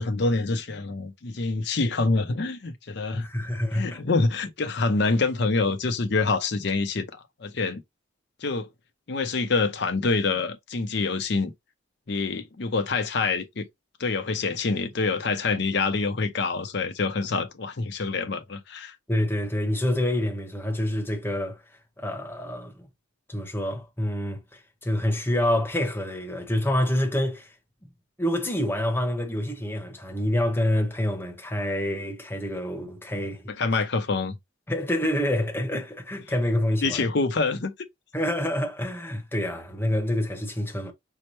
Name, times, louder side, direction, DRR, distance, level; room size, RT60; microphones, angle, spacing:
voice 1, 0.0-3.3 3.7-7.8 8.4-8.7 9.1-11.5 12.1-13.7 14.0-19.0 33.5-34.4 36.8-37.7, left 3 dB, 55° left, 0.6 m, -26 dB
voice 2, 3.1-4.0 19.1-21.6 22.0-22.9 23.3-27.5 28.2-33.5 34.7-37.0 38.1-40.9, left 1 dB, 10° left, 0.9 m, -27 dB
5.4 x 2.1 x 3.0 m
head